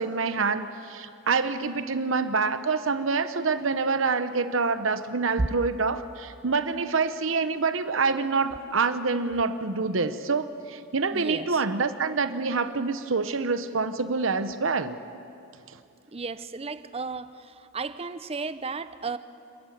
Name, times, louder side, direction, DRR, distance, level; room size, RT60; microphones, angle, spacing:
voice 1, 0.0-15.0, right 4 dB, 75° right, 11 dB, 0.9 m, -26 dB
voice 2, 11.1-11.6 16.1-19.2, right 3 dB, 30° right, 13 dB, 0.7 m, -33 dB
26.5 x 14.5 x 9.3 m, 2.6 s
head